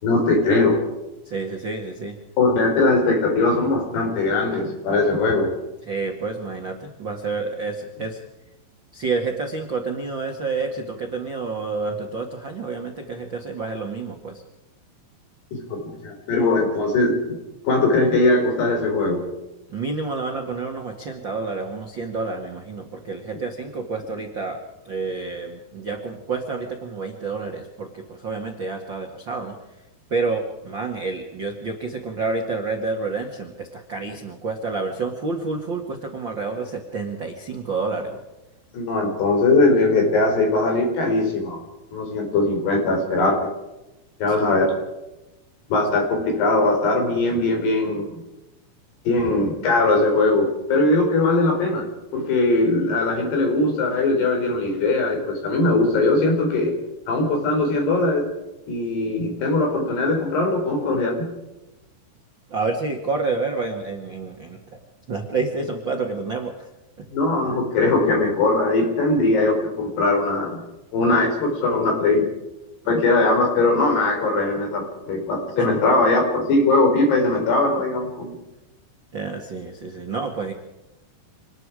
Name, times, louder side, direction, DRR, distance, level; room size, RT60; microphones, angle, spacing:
voice 1, 0.0-0.8 2.4-5.5 15.5-17.4 17.6-19.3 38.7-41.6 41.9-43.5 44.2-44.8 45.7-48.2 49.0-56.7 57.1-58.3 58.7-61.3 67.1-70.6 70.9-72.2 72.9-78.4, left 2 dB, 55° left, 3 dB, 6.5 m, -20 dB
voice 2, 1.2-2.2 5.9-8.2 8.9-14.4 19.7-29.6 30.1-38.2 62.5-64.8 65.1-66.7 75.6-75.8 79.1-80.5, right 4 dB, 80° right, 2 dB, 1.0 m, -29 dB
26.5 x 20.0 x 4.9 m, 0.98 s
omnidirectional pair, 5.6 m